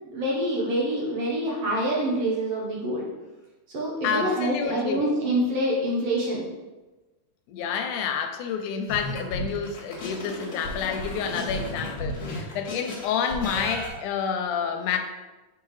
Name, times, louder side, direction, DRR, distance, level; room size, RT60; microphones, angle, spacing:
voice 1, 0.1-3.1 3.7-6.4, right 1 dB, 65° right, -4 dB, 1.7 m, -26 dB
voice 2, 4.0-5.0 7.5-15.0, left 7 dB, 80° left, 6 dB, 2.0 m, -29 dB
sound 1, 8.9-13.9, left 1 dB, 40° left, 1.5 m, -34 dB
6.9 x 4.6 x 3.1 m, 1.1 s
omnidirectional pair, 3.6 m